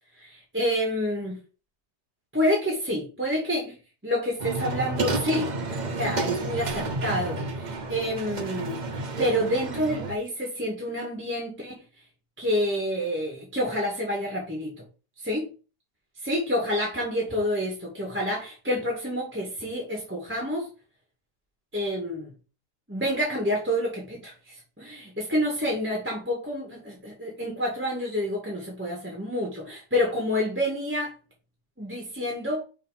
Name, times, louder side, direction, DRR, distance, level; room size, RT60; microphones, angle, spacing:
voice 1, 0.2-1.4 2.3-5.5 6.0-8.8 9.2-11.8 12.4-14.8 15.3-15.4 16.2-20.7 21.7-22.3 22.9-31.1 31.8-32.6, equal, 5° right, -2 dB, 1.5 m, -28 dB
sound 1, 4.4-10.2, right 3 dB, 50° right, 0.5 m, -31 dB
5.7 x 3.1 x 5.5 m, 0.34 s
omnidirectional pair, 1.9 m